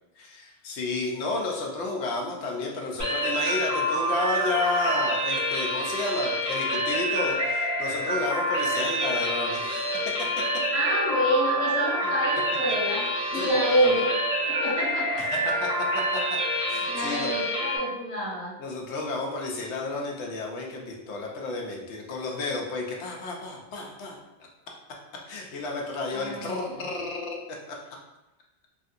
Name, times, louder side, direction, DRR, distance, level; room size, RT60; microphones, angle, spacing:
voice 1, 0.2-10.4 12.0-12.1 13.3-14.0 15.2-15.7 16.1-16.2 16.7-17.3 18.6-24.2 25.3-28.0, left 3 dB, 90° left, 0 dB, 0.9 m, -32 dB
sound 1, 3.0-17.8, equal, 20° right, 0.6 m, -27 dB
voice 2, 10.7-14.1 14.4-15.2 16.9-18.5 26.1-26.8, right 1 dB, 30° left, -9 dB, 1.4 m, -27 dB
3.2 x 2.6 x 2.4 m, 0.96 s
omnidirectional pair, 1.1 m